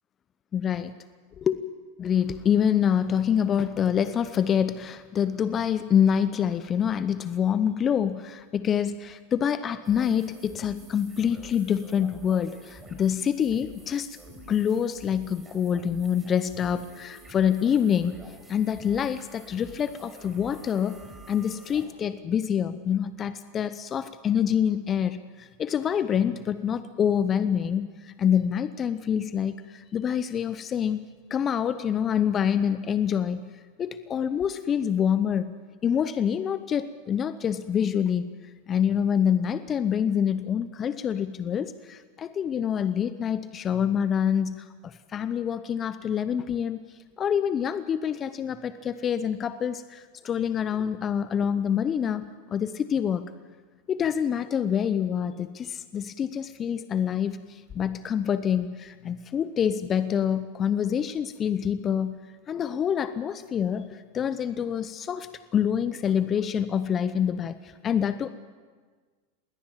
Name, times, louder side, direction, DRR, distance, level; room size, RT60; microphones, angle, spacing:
voice 1, 0.5-0.9 1.4-1.6 2.0-14.1 14.5-18.2 18.5-21.0 21.3-33.5 33.8-35.6 35.8-38.3 38.7-46.8 47.2-53.3 53.9-62.2 62.5-68.3, left 8 dB, 30° left, 13 dB, 0.7 m, -26 dB
sound 1, 9.8-21.8, right 2 dB, 15° right, 4.6 m, -48 dB
21.0 x 17.5 x 7.4 m, 1.5 s
hypercardioid pair, 95°, 0 cm